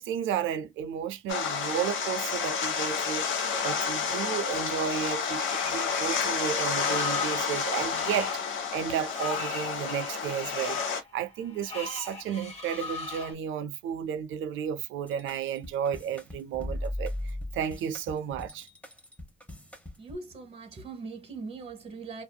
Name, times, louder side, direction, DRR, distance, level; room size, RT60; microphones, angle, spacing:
voice 1, 0.0-17.1 17.5-18.7, right 8 dB, 80° right, 0.5 m, -33 dB
sound 1, 1.3-11.0, left 6 dB, 85° left, 0.8 m, -30 dB
Screech, 5.4-13.3, left 4 dB, 35° left, 1.1 m, -39 dB
sound 2, 15.1-20.2, left 1 dB, 5° left, 0.8 m, -38 dB
voice 2, 20.0-22.2, right 4 dB, 30° right, 1.0 m, -41 dB
2.7 x 2.4 x 2.2 m
cardioid pair, 90°, 20 cm